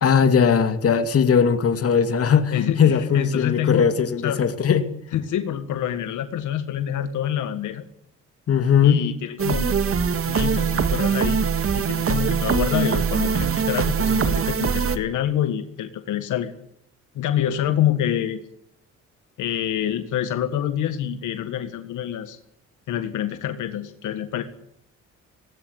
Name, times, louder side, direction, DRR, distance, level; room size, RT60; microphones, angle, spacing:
voice 1, 0.0-4.9 8.5-9.0, left 7 dB, 50° left, 2.4 m, -19 dB
voice 2, 2.5-3.9 4.2-4.4 5.1-7.8 8.8-10.0 10.2-11.4 11.7-16.5 17.1-18.4 19.4-22.4 22.9-24.4, left 10 dB, 80° left, 1.8 m, -26 dB
sound 1, 9.4-15.0, right 6 dB, 45° right, 2.0 m, -22 dB
18.5 x 18.5 x 8.1 m
cardioid pair, 90°, 30 cm